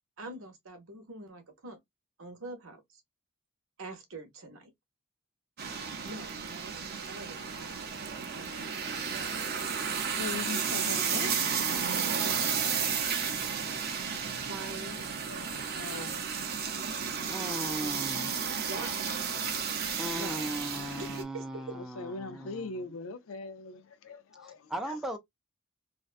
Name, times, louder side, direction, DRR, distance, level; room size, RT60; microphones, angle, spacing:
voice 1, 0.2-1.8 2.2-3.0 3.8-4.7 6.0-8.8 9.1-10.4 14.4-15.1 16.8-17.0 17.3-19.1 20.1-20.4 21.0-21.8, right 2 dB, 90° right, 0.8 m, -45 dB
sound 1, 5.6-21.2, right 6 dB, 50° right, 0.6 m, -33 dB
voice 2, 10.2-11.7 15.3-18.7 21.7-25.0, left 3 dB, 80° left, 0.4 m, -42 dB
voice 3, 17.3-18.4 20.0-22.7 24.4-25.2, right 1 dB, ahead, 0.5 m, -38 dB
2.5 x 2.2 x 2.3 m
head